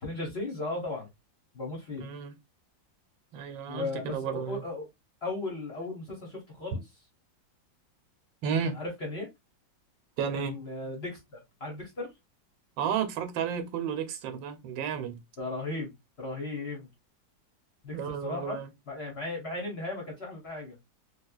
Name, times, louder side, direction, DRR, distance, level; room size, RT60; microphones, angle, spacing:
voice 1, 0.0-1.1 1.5-2.1 3.7-4.9 5.2-6.8 8.7-9.3 10.3-12.1 15.4-15.9 16.2-16.9 17.8-18.6 18.9-20.8, left 2 dB, 40° left, 1.2 m, -36 dB
voice 2, 2.0-2.3 3.3-4.6 6.7-6.8 8.4-8.8 10.2-10.6 12.8-15.2 17.9-18.7, right 7 dB, 85° right, 1.4 m, -32 dB
3.5 x 2.9 x 2.3 m
omnidirectional pair, 2.0 m